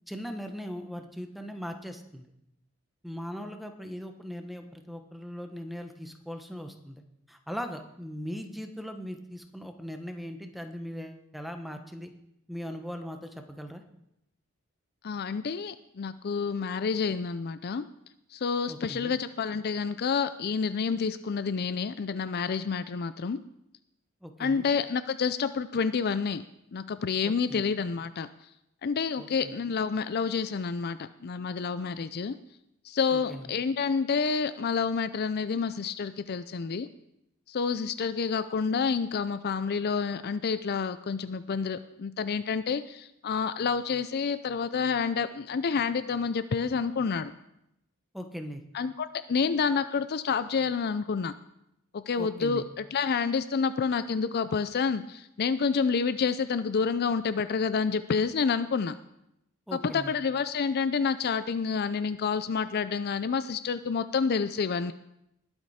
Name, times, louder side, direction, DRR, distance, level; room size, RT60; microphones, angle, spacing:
voice 1, 0.1-2.2 3.0-7.0 7.3-12.1 12.5-13.8 18.7-19.1 24.2-24.7 27.2-27.6 29.2-29.5 33.1-33.5 48.1-48.6 52.1-52.6 59.7-60.1, equal, ahead, 5 dB, 1.0 m, -39 dB
voice 2, 15.0-17.9 18.3-23.4 24.4-26.4 26.7-28.3 28.8-32.4 32.8-36.9 37.5-47.3 48.7-51.3 51.9-59.0 59.7-64.9, left 5 dB, 50° left, 13 dB, 0.4 m, -29 dB
20.0 x 7.9 x 4.3 m, 0.83 s
head